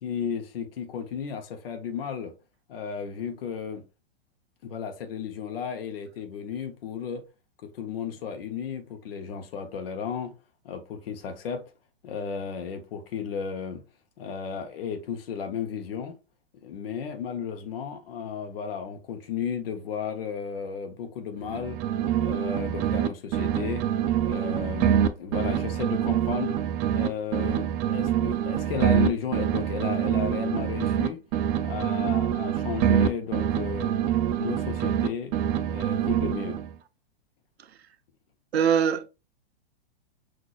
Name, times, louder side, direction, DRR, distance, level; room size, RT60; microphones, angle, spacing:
voice 1, 0.0-2.3 2.7-3.8 4.6-7.2 7.6-10.3 10.6-11.6 12.0-13.8 14.2-16.1 16.5-21.8 22.2-23.8 24.2-26.6 26.9-31.2 31.6-34.0 34.3-35.3 35.7-36.6, left 7 dB, 65° left, 0.9 m, -34 dB
sound 1, 21.4-23.1 23.3-27.1 27.3-31.1 31.3-35.1 35.3-36.7, right 10 dB, 30° right, 0.4 m, -25 dB
voice 2, 38.5-39.1, right 7 dB, 85° right, 0.5 m, -22 dB
6.0 x 2.5 x 2.4 m
hypercardioid pair, 110°, 31 cm